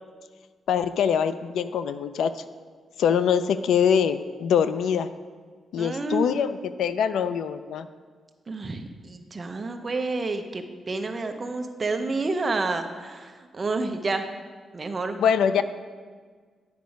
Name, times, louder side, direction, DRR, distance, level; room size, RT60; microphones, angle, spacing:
voice 1, 0.7-2.3 3.0-5.1 5.7-7.9 15.2-15.6, left 7 dB, 90° left, 12 dB, 0.4 m, -23 dB
voice 2, 5.8-6.4 8.5-14.3 14.7-15.2, right 3 dB, 25° right, 6 dB, 0.6 m, -29 dB
9.4 x 4.7 x 5.2 m, 1.5 s
wide cardioid pair, 155°, 0 cm